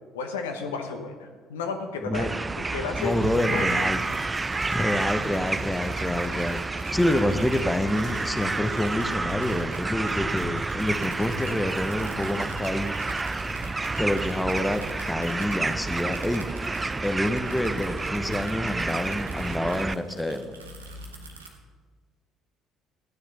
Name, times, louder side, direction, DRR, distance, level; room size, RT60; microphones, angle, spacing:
voice 1, 0.1-3.2 3.4-3.8, left 5 dB, 75° left, 4 dB, 1.1 m, -33 dB
sound 1, 2.1-19.9, right 3 dB, 20° right, 0.4 m, -30 dB
sound 2, 2.9-21.5, right 2 dB, 85° right, 1.1 m, -47 dB
voice 2, 3.0-4.0 4.7-12.9 14.0-16.5 17.0-20.5, left 1 dB, 5° left, 8 dB, 0.9 m, -27 dB
sound 3, 8.0-15.2 15.8-16.5 17.3-17.8 18.8-18.9, left 3 dB, 55° left, 0.9 m, -43 dB
14.5 x 9.5 x 4.0 m, 1.5 s
figure-of-eight pair, 55°, 0 cm